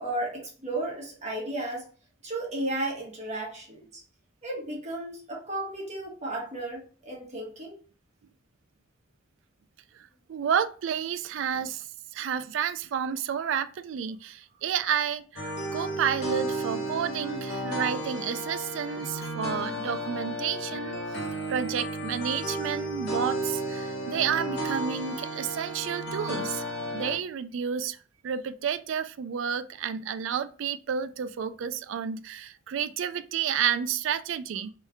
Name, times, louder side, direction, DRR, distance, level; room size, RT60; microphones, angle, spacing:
voice 1, 0.0-1.9 2.2-4.0 4.4-7.8, right 1 dB, 35° right, 1.3 m, -34 dB
voice 2, 10.3-11.9 12.1-21.0 21.5-26.6 26.9-28.0 28.2-34.7, right 8 dB, 70° right, 0.3 m, -30 dB
sound 1, 15.4-27.2, right 1 dB, 55° left, 1.0 m, -33 dB
3.2 x 3.1 x 3.4 m
head